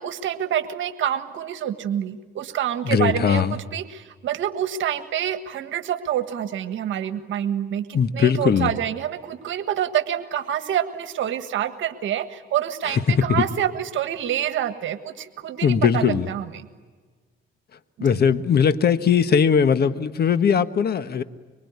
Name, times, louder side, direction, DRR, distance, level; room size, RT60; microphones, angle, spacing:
voice 1, 0.0-16.7 18.0-18.1, right 10 dB, 75° right, 11 dB, 1.6 m, -27 dB
voice 2, 2.8-3.6 7.9-8.7 12.9-13.4 15.6-16.3 18.0-21.2, left 7 dB, 55° left, 11 dB, 1.5 m, -19 dB
25.5 x 24.0 x 9.7 m, 1.4 s
cardioid pair, 90°, 20 cm